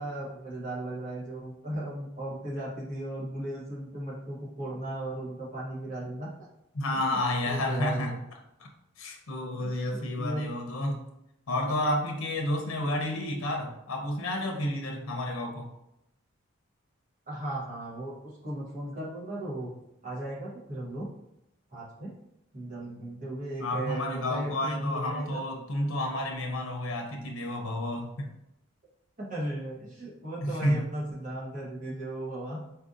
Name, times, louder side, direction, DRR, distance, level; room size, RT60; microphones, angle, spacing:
voice 1, 0.0-6.3 7.0-8.2 9.6-10.4 17.3-19.7 20.0-21.1 21.7-22.1 22.5-25.4 29.2-32.6, right 1 dB, 35° right, -6 dB, 1.0 m, -36 dB
voice 2, 6.7-8.2 8.6-8.7 9.0-11.0 11.5-15.7 23.6-28.3 30.4-30.9, left 1 dB, 80° left, 2 dB, 0.6 m, -30 dB
4.2 x 2.6 x 2.5 m, 0.83 s
head